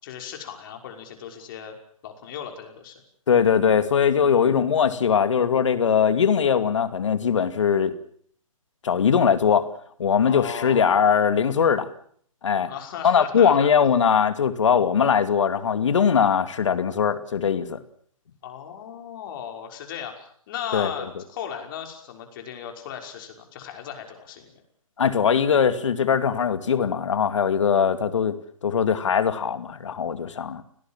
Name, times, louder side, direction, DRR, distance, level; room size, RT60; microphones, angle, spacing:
voice 1, 0.0-1.8 2.0-2.9 4.1-4.5 10.2-10.9 12.7-13.7 18.4-24.6, left 9 dB, 40° left, 4 dB, 5.7 m, -36 dB
voice 2, 3.3-7.9 8.8-9.7 10.0-11.9 12.4-12.7 13.0-17.8 20.7-20.9 25.0-30.6, left 7 dB, 60° left, 11 dB, 2.4 m, -21 dB
29.5 x 18.5 x 7.5 m, 0.62 s
figure-of-eight pair, 135°, 18 cm